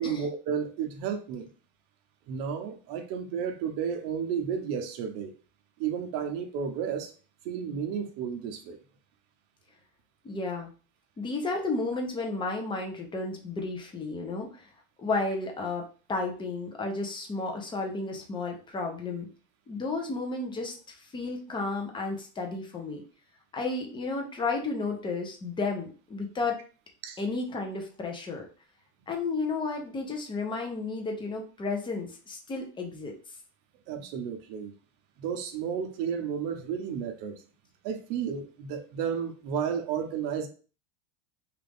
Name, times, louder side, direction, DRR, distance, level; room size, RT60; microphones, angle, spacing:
voice 1, 0.0-1.5 2.3-5.3 5.8-7.1 7.4-8.8 27.0-27.2 33.9-34.7 35.2-37.4 37.8-40.5, right 7 dB, 55° right, 6 dB, 0.7 m, -32 dB
voice 2, 10.2-10.7 11.2-14.7 15.0-19.3 19.7-20.7 21.1-23.0 23.5-26.6 27.2-28.5 29.1-33.1, left 3 dB, 15° left, 2 dB, 0.5 m, -32 dB
3.1 x 2.4 x 3.4 m, 0.37 s
cardioid pair, 150°, 39 cm